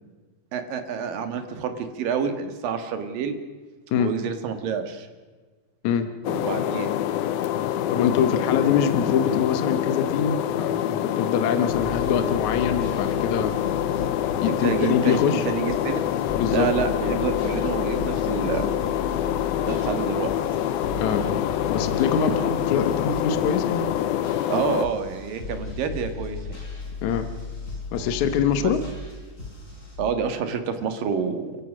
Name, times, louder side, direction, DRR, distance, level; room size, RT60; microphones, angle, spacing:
voice 1, 0.5-3.4 4.0-5.1 6.3-6.9 14.5-16.0 16.5-18.8 19.6-20.3 24.5-26.6 28.6-28.7 30.0-31.6, right 6 dB, 65° right, 8 dB, 3.2 m, -28 dB
sound 1, 6.3-24.9, left 11 dB, 80° left, 2.6 m, -26 dB
voice 2, 7.9-13.6 14.4-15.5 16.4-16.7 21.0-23.8 27.0-27.3 27.9-28.8, left 7 dB, 65° left, 9 dB, 2.1 m, -24 dB
sound 2, 11.7-30.0, left 3 dB, 20° left, 5.3 m, -36 dB
29.5 x 15.5 x 6.3 m, 1.4 s
omnidirectional pair, 4.4 m